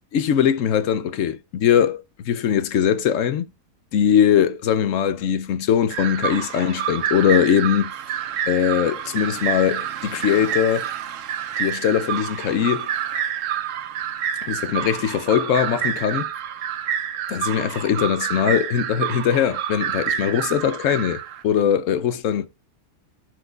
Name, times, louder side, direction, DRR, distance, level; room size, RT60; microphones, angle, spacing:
voice 1, 0.1-3.4 3.9-7.9 8.5-10.9 11.6-12.9 14.4-16.3 17.3-21.2 21.4-22.5, left 8 dB, 60° left, 0.9 m, -21 dB
sound 1, 5.9-21.4, right 9 dB, 65° right, 0.9 m, -28 dB
11.5 x 4.8 x 2.4 m
omnidirectional pair, 1.7 m